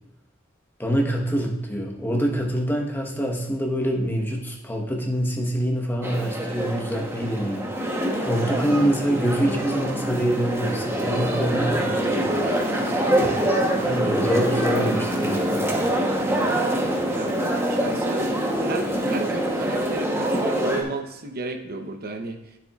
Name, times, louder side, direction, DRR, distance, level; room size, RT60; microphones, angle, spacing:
voice 1, 0.8-12.2 13.8-15.7, right 1 dB, 10° left, 0 dB, 1.1 m, -25 dB
sound 1, 6.0-20.8, right 1 dB, 10° right, 0.9 m, -25 dB
voice 2, 12.6-13.0 17.1-17.4 17.7-22.4, right 2 dB, 50° right, 6 dB, 0.8 m, -33 dB
9.7 x 7.1 x 2.4 m, 0.99 s
head